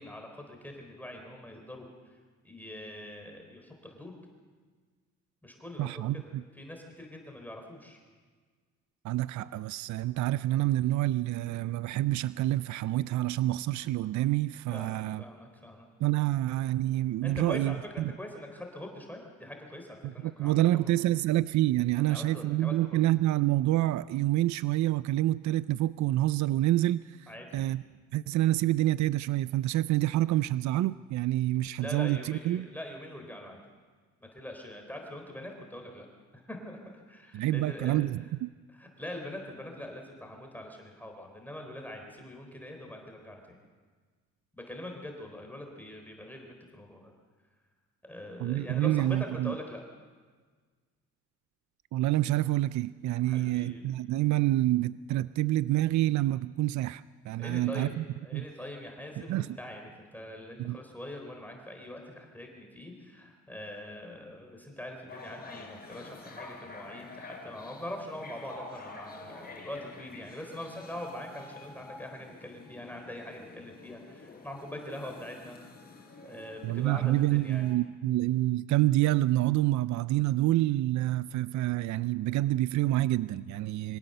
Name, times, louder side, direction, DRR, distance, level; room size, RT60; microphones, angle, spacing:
voice 1, 0.0-1.9 2.4-4.2 5.4-6.2 6.5-8.0 14.7-15.9 17.2-20.9 22.0-23.0 27.3-27.6 31.8-33.6 34.2-36.1 36.3-36.8 37.1-38.0 38.7-43.5 44.5-47.1 48.0-49.8 53.2-53.9 57.4-75.6 76.2-77.7, left 1 dB, 5° left, 2 dB, 3.8 m, -43 dB
voice 2, 5.8-6.4 9.0-15.2 16.0-18.1 20.0-27.8 28.1-32.7 37.3-38.5 48.4-49.5 51.9-58.0 58.3-58.4 59.3-59.6 60.6-60.8 76.6-84.0, right 15 dB, 70° right, 16 dB, 0.5 m, -27 dB
sound 1, 65.1-77.7, left 3 dB, 30° left, 4.5 m, -48 dB
24.5 x 17.0 x 6.7 m, 1.5 s
cardioid pair, 90°, 30 cm